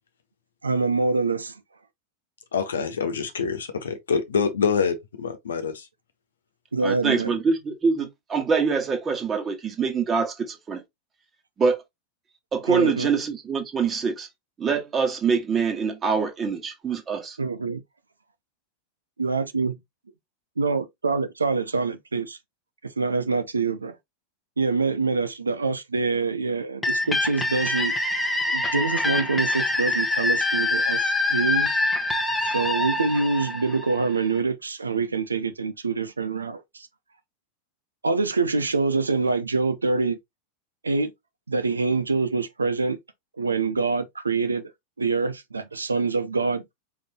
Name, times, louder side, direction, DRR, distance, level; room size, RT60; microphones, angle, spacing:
voice 1, 0.6-1.6 6.7-7.3 12.7-13.1 17.4-17.8 19.2-19.7 20.6-22.4 22.8-23.9 24.6-27.9 28.5-31.0 31.3-31.8 32.4-36.9 38.0-40.2 40.8-41.1 41.5-43.0 43.4-44.6 45.0-46.6, right 4 dB, 75° right, 0.7 m, -25 dB
voice 2, 2.5-5.9, left 6 dB, 65° left, 1.1 m, -26 dB
voice 3, 6.8-10.8 11.6-11.8 12.5-14.3 14.6-17.4, right 5 dB, 20° right, 1.5 m, -24 dB
sound 1, 26.8-34.4, left 2 dB, 5° left, 1.1 m, -25 dB
5.1 x 3.5 x 2.9 m
figure-of-eight pair, 90°, 0 cm